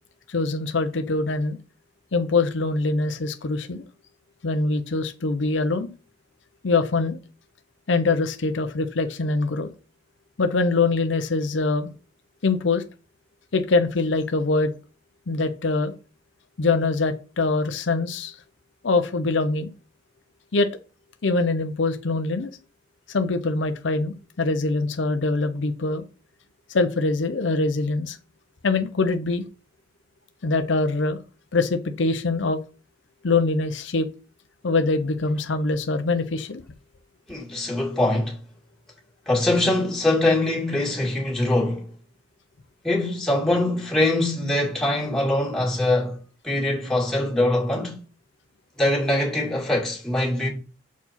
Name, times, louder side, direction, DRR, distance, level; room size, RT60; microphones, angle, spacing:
voice 1, 0.3-1.6 2.1-3.8 4.4-5.9 6.6-7.2 7.9-9.7 10.4-11.9 12.4-12.8 13.5-14.7 15.3-15.9 16.6-18.4 18.8-19.7 20.5-20.7 21.2-22.5 23.1-26.0 26.7-28.2 28.6-29.4 30.4-31.2 31.5-32.6 33.2-34.1 34.6-36.6, left 3 dB, 75° left, 0.6 m, -23 dB
voice 2, 37.3-38.4 39.3-41.9 42.8-48.0 48.8-50.5, left 1 dB, 5° left, 2.2 m, -23 dB
7.0 x 4.6 x 4.2 m
head